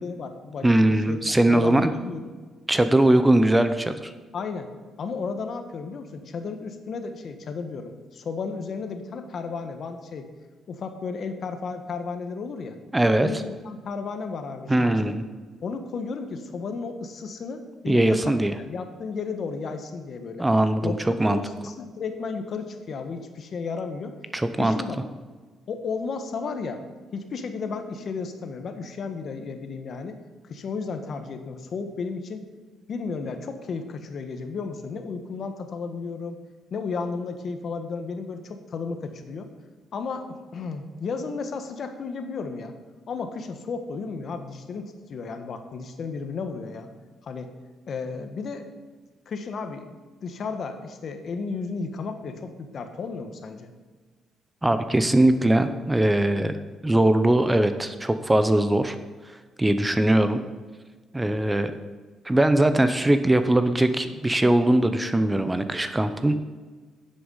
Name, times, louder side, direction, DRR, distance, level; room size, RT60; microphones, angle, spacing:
voice 1, 0.0-1.2 1.4-2.4 4.3-4.7 5.0-10.3 10.7-12.8 13.2-15.2 15.6-18.3 18.6-20.5 20.8-20.9 21.3-24.1 24.6-25.0 25.7-26.8 27.1-30.2 30.4-32.5 32.9-36.4 36.7-39.5 39.9-42.7 43.1-46.9 47.2-47.6 47.9-48.7 49.3-49.9 50.2-53.7, left 4 dB, 55° left, 7 dB, 1.3 m, -33 dB
voice 2, 0.6-1.9 2.7-4.1 12.9-13.3 14.7-15.2 17.9-18.5 20.4-21.4 24.3-24.7 54.6-56.5 56.8-58.9 59.6-60.4 61.1-61.7 62.2-66.5, right 1 dB, 15° right, 10 dB, 0.7 m, -21 dB
10.0 x 8.1 x 5.6 m, 1.4 s
cardioid pair, 90°, 0 cm